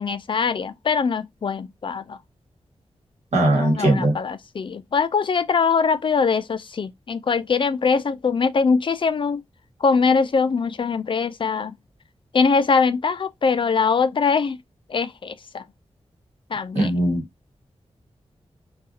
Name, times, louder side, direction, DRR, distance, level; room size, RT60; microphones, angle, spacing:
voice 1, 0.0-2.2 3.5-9.4 9.8-11.7 12.3-14.6 14.9-15.6 16.5-16.9, left 5 dB, 50° left, 0.4 m, -22 dB
voice 2, 3.3-4.1 16.7-17.2, right 1 dB, 85° right, 1.4 m, -19 dB
2.4 x 2.3 x 2.7 m
wide cardioid pair, 80°, 11 cm